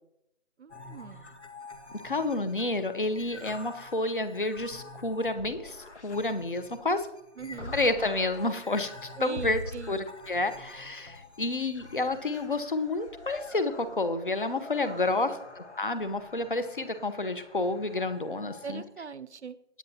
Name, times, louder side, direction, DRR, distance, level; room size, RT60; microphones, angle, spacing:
voice 1, 0.6-1.3 7.4-7.8 9.2-10.0 14.8-15.3 18.6-19.6, right 6 dB, 75° right, 15 dB, 0.7 m, -41 dB
sound 1, 0.7-18.8, left 2 dB, 75° left, 1.8 m, -46 dB
voice 2, 2.0-7.1 7.7-9.6 9.9-18.8, left 2 dB, 50° left, 10 dB, 0.9 m, -30 dB
17.0 x 9.2 x 2.9 m, 0.82 s
figure-of-eight pair, 175°, 34 cm